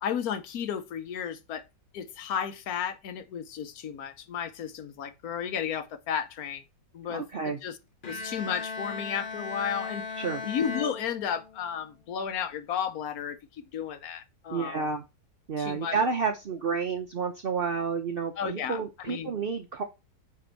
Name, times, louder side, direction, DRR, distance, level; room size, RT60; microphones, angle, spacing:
voice 1, 0.0-1.6 1.9-6.6 6.9-7.8 8.1-10.1 10.4-14.8 15.6-16.0 18.4-18.8 19.1-19.3, left 8 dB, 65° left, 1.1 m, -33 dB
voice 2, 7.1-7.6 10.2-10.4 14.5-15.0 15.5-19.8, right 5 dB, 70° right, 0.5 m, -30 dB
Bowed string instrument, 8.0-11.8, left 4 dB, 40° left, 0.8 m, -37 dB
9.1 x 3.5 x 4.4 m
omnidirectional pair, 1.9 m